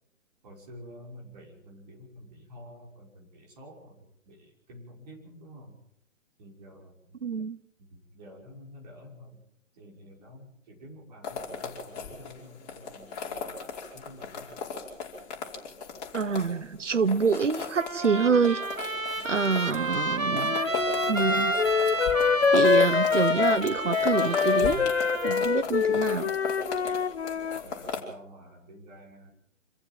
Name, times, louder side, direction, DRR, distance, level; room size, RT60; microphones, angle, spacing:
voice 1, 0.4-5.8 6.4-7.2 7.8-9.4 9.7-14.7 19.1-19.2 27.5-29.3, equal, 30° right, 5.9 m, -49 dB
voice 2, 7.2-7.6 16.1-18.6 19.2-20.6 21.1-21.6 22.5-24.8 25.2-26.3 26.8-27.0, right 5 dB, 65° right, 1.2 m, -26 dB
sound 1, 11.2-28.0, left 5 dB, 30° left, 5.1 m, -38 dB
Trumpet, 17.8-25.4, right 1 dB, 85° right, 1.7 m, -30 dB
Wind instrument woodwind instrument, 20.3-27.6, left 6 dB, 55° left, 0.9 m, -25 dB
27.0 x 14.5 x 7.7 m
figure-of-eight pair, 140°, 39 cm